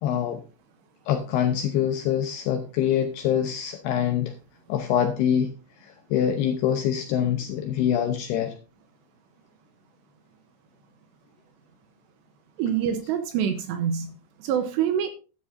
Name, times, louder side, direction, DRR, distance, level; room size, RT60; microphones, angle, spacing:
voice 1, 0.0-0.4 1.1-4.3 4.7-5.5 5.8-8.6, left 9 dB, 80° left, 7 dB, 2.4 m, -25 dB
voice 2, 12.6-15.1, right 8 dB, 80° right, 8 dB, 2.7 m, -26 dB
12.5 x 11.5 x 2.6 m, 0.33 s
omnidirectional pair, 5.7 m